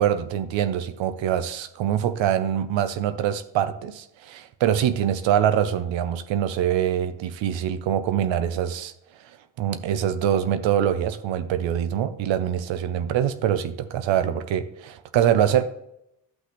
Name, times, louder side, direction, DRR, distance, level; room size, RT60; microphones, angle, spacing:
voice 1, 0.0-8.9 9.2-15.6, right 10 dB, 80° right, 0.7 m, -24 dB
12.0 x 5.8 x 3.0 m
supercardioid pair, 45°, 45 cm